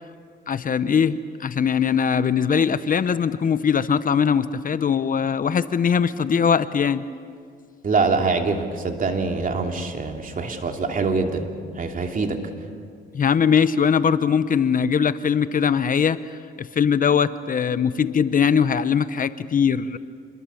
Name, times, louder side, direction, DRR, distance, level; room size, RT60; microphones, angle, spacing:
voice 1, 0.5-7.1 13.1-20.0, left 7 dB, 45° left, 13 dB, 0.8 m, -21 dB
voice 2, 7.8-11.5 11.8-12.4, right 4 dB, 45° right, 3 dB, 2.9 m, -24 dB
27.0 x 21.5 x 7.1 m, 2.1 s
cardioid pair, 90°, 20 cm